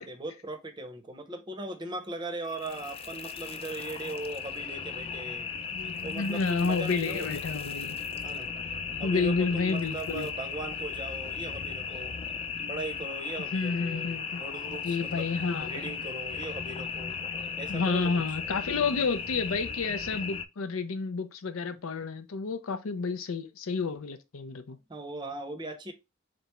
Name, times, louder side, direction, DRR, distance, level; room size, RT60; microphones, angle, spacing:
voice 1, 0.0-5.5 6.0-7.3 7.8-7.9 8.2-8.5 9.0-12.2 12.7-15.3 15.6-17.2 17.6-18.2 24.9-25.9, right 2 dB, 20° right, 0.7 m, -39 dB
sound 1, 2.4-20.4, left 6 dB, 30° left, 0.3 m, -36 dB
voice 2, 5.7-8.0 9.0-10.3 13.5-14.4 14.8-15.9 17.7-24.8, left 4 dB, 85° left, 0.6 m, -30 dB
3.9 x 3.4 x 3.0 m
head